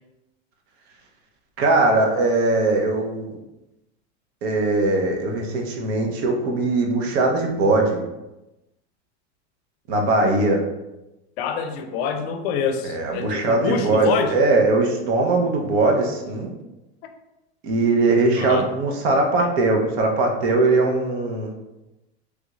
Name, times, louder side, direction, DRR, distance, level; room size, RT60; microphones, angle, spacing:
voice 1, 1.6-3.4 4.4-8.0 9.9-10.6 12.8-16.5 17.6-21.5, right 2 dB, 65° right, 1 dB, 0.9 m, -20 dB
voice 2, 11.4-14.3 18.4-18.7, left 6 dB, 60° left, 7 dB, 0.5 m, -26 dB
3.4 x 2.4 x 3.0 m, 0.97 s
supercardioid pair, 130°, 34 cm